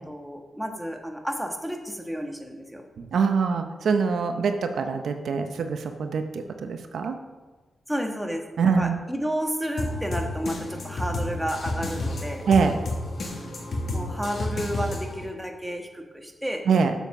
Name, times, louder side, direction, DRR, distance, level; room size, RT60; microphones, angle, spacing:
voice 1, 0.1-2.8 7.9-12.4 13.9-16.6, equal, 5° right, 3 dB, 1.4 m, -31 dB
voice 2, 3.0-7.2 8.6-9.0 12.5-12.8 16.7-16.9, right 5 dB, 75° right, 7 dB, 0.7 m, -24 dB
sound 1, 9.8-15.3, left 1 dB, 55° left, 1.7 m, -31 dB
7.1 x 7.0 x 5.9 m, 1.3 s
cardioid pair, 75°, 0 cm